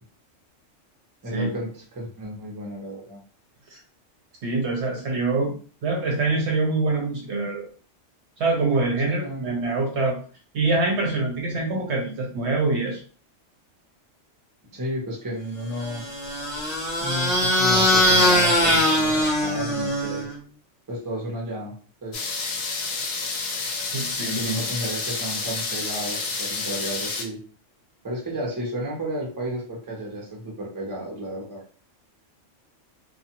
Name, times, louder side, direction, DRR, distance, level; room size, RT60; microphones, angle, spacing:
voice 1, 1.2-3.2 9.0-9.6 14.7-16.0 17.0-20.3 20.9-21.7 22.0-22.3 24.4-27.4 28.0-31.6, equal, 20° right, -2 dB, 0.7 m, -32 dB
voice 2, 4.4-5.5 5.8-7.7 8.4-10.1 10.5-13.0 23.9-24.6, right 3 dB, 65° right, 0 dB, 0.9 m, -25 dB
sound 1, 15.8-20.3, left 1 dB, 35° left, 0.9 m, -21 dB
sound 2, 22.1-27.2, left 4 dB, 70° left, 0.9 m, -29 dB
2.4 x 2.4 x 2.8 m, 0.41 s
omnidirectional pair, 1.3 m